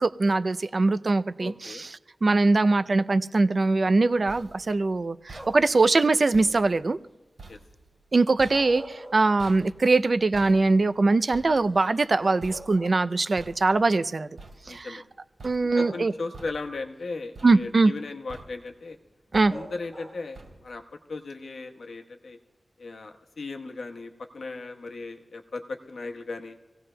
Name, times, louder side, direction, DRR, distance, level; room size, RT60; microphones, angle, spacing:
voice 1, 0.0-1.9 2.2-7.0 8.1-14.3 14.7-15.0 15.4-16.1 17.4-17.9 19.3-19.5, right 3 dB, 50° right, 13 dB, 0.4 m, -22 dB
voice 2, 1.4-1.8 7.5-7.6 14.7-15.0 15.8-19.0 19.5-20.8 21.1-22.4 22.8-26.6, left 3 dB, 85° left, 4 dB, 1.1 m, -37 dB
sound 1, 3.9-15.1 15.4-16.0 16.3-17.0 17.3-18.0 18.3-18.8 19.3-19.9 20.3-20.9, right 3 dB, 80° right, 2.8 m, -49 dB
sound 2, 5.3-5.8 8.3-9.7 10.1-10.2 11.7-11.8 12.2-13.3 14.4-14.5 15.7-16.5 19.5-20.4, right 1 dB, ahead, 5.0 m, -43 dB
26.0 x 17.0 x 2.2 m, 1.1 s
wide cardioid pair, 105°, 0 cm